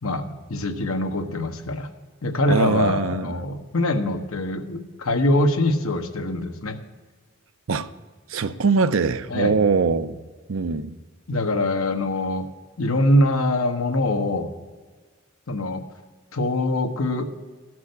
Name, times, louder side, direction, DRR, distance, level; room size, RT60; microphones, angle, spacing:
voice 1, 0.0-1.9 2.2-6.8 9.3-9.6 11.3-12.5 12.8-14.5 15.5-15.8 16.3-17.3, left 1 dB, 75° left, 1.1 m, -23 dB
voice 2, 2.5-3.5 7.7-7.9 8.3-10.2 10.5-11.0, right 4 dB, 70° right, 0.6 m, -22 dB
12.5 x 6.1 x 8.0 m
head